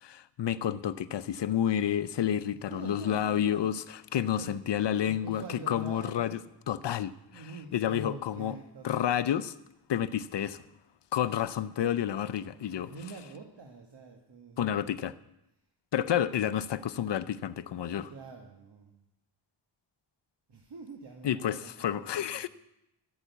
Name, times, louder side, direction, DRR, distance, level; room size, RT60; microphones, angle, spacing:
voice 1, 0.0-6.4 6.7-7.1 7.7-8.6 8.8-9.5 9.9-10.6 11.1-12.9 14.6-15.1 15.9-18.1 21.2-22.5, left 10 dB, 65° left, 15 dB, 0.7 m, -30 dB
voice 2, 2.5-3.8 4.3-4.5 5.0-6.4 7.3-9.0 12.7-14.9 17.8-19.0 20.5-22.5, right 3 dB, 65° right, 1 dB, 1.7 m, -45 dB
13.0 x 8.5 x 8.2 m, 0.86 s
wide cardioid pair, 100°, 45 cm